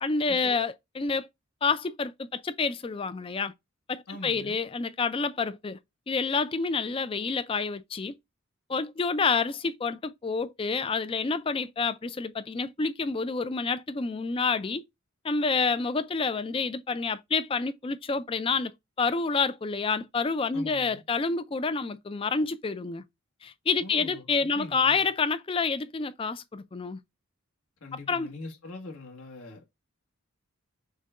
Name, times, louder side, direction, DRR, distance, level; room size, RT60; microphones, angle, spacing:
voice 1, 0.0-1.3 1.6-3.5 3.9-5.8 6.1-8.1 8.7-14.8 15.2-23.0 23.4-27.0 28.1-28.3, left 4 dB, 25° left, 0.3 m, -28 dB
voice 2, 4.1-4.6 20.5-21.0 23.8-25.0 27.8-29.6, left 2 dB, 75° left, 1.4 m, -43 dB
6.4 x 2.2 x 3.6 m
head